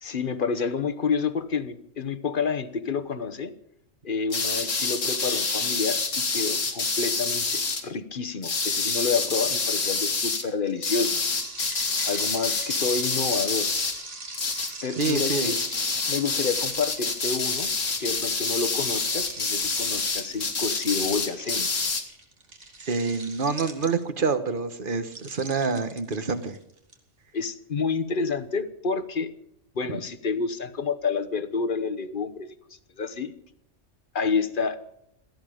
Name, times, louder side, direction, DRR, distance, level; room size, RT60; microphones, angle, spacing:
voice 1, 0.0-3.5 4.0-11.2 12.0-13.7 14.8-15.6 16.1-17.7 18.0-21.8 27.3-29.3 29.7-33.3 34.1-34.8, left 5 dB, 45° left, 10 dB, 1.2 m, -29 dB
sound 1, 4.3-7.8 8.4-10.4 10.8-14.0 14.3-14.7 15.0-22.0, left 4 dB, 75° left, 2.3 m, -27 dB
sound 2, 10.6-24.3 25.0-26.9, right 3 dB, 70° right, 2.8 m, -42 dB
voice 2, 15.0-15.5 22.8-26.6, right 4 dB, 45° right, 11 dB, 1.5 m, -27 dB
18.0 x 14.5 x 5.2 m, 0.75 s
omnidirectional pair, 1.3 m